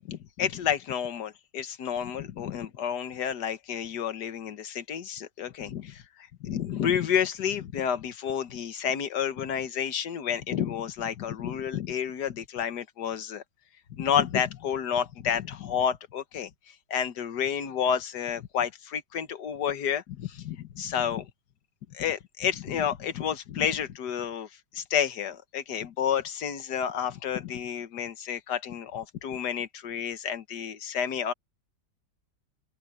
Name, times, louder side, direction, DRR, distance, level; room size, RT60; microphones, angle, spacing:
voice 1, 0.0-13.4 13.9-16.5 16.9-21.3 21.9-31.3, left 8 dB, 65° left, 1.7 m, -30 dB
open air
omnidirectional pair, 1.9 m